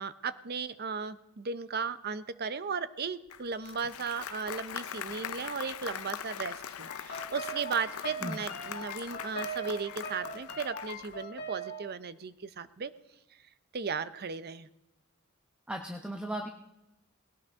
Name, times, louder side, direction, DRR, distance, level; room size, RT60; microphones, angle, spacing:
voice 1, 0.0-12.9 13.7-14.7, right 5 dB, 45° right, 14 dB, 0.6 m, -36 dB
Applause, 3.3-11.2, left 9 dB, 80° left, 0.6 m, -41 dB
sound 1, 6.9-11.9, right 2 dB, 45° left, 2.1 m, -41 dB
voice 2, 15.7-16.5, right 1 dB, 5° right, 2 dB, 0.8 m, -36 dB
19.0 x 17.5 x 3.6 m, 0.92 s
head